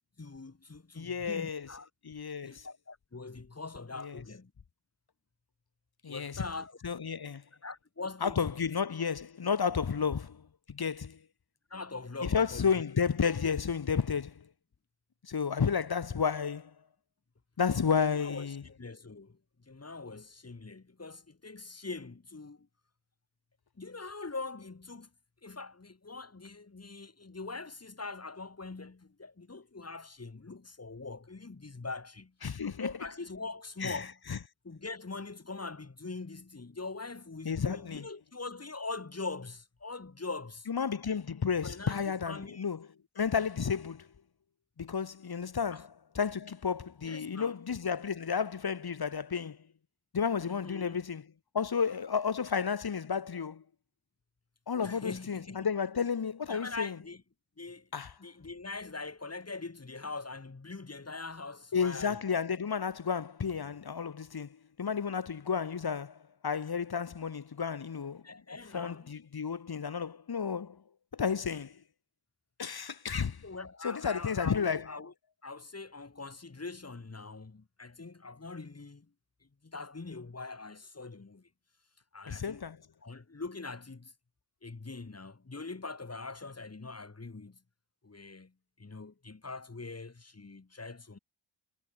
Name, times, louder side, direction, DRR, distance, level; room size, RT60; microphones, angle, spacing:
voice 1, 0.0-1.9 2.4-4.5 6.1-6.8 7.6-8.5 11.7-12.7 17.9-22.7 23.8-25.1 25.4-32.3 32.8-34.2 34.6-40.7 41.6-42.6 45.7-45.8 47.0-47.6 50.4-51.0 54.8-55.7 56.5-57.2 57.6-57.9 58.2-62.2 68.2-69.1 73.4-75.1 75.4-79.1 79.6-81.5 82.1-82.6 83.0-84.1 84.6-87.6 88.0-88.5 88.8-91.2, left 3 dB, 30° left, 5.9 m, -42 dB
voice 2, 0.9-1.7 2.0-2.7 4.0-4.2 6.0-6.4 6.8-7.4 8.2-11.2 12.2-14.5 15.2-16.7 17.6-18.6 32.4-32.9 33.8-34.0 34.3-34.4 37.4-38.1 40.7-42.9 43.2-44.1 44.8-49.6 50.1-51.3 51.5-53.6 54.7-57.0 57.9-58.1 61.7-68.2 68.7-70.8 71.1-71.8 72.6-73.4 73.8-74.9 82.3-82.8, left 6 dB, 50° left, 2.5 m, -32 dB
cardioid pair, 85°, 49 cm